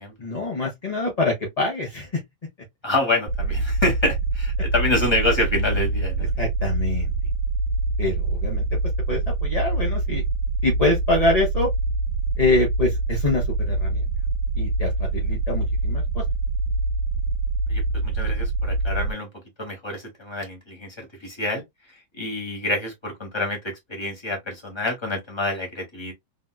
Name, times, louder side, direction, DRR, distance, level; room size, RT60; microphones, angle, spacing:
voice 1, 0.2-2.1 6.4-7.1 8.0-8.6 9.1-10.2 10.6-11.7 12.4-14.0 14.6-16.2, left 2 dB, 35° left, 0.6 m, -25 dB
voice 2, 2.8-6.3 17.7-19.3 19.6-21.6 22.2-23.6 23.9-26.1, left 2 dB, 15° left, 1.1 m, -27 dB
sound 1, 3.3-19.1, right 3 dB, 80° right, 1.3 m, -25 dB
3.5 x 2.7 x 2.2 m
omnidirectional pair, 2.1 m